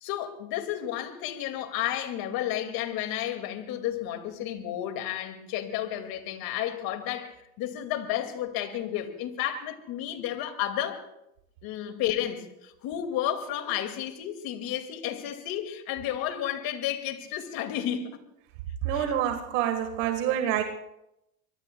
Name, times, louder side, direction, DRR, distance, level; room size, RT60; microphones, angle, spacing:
voice 1, 0.0-11.0 11.6-18.2 18.9-19.2, left 11 dB, 60° left, 2.2 m, -32 dB
voice 2, 18.8-20.6, right 10 dB, 70° right, 1.6 m, -27 dB
24.5 x 22.5 x 2.2 m
supercardioid pair, 90°, 41 cm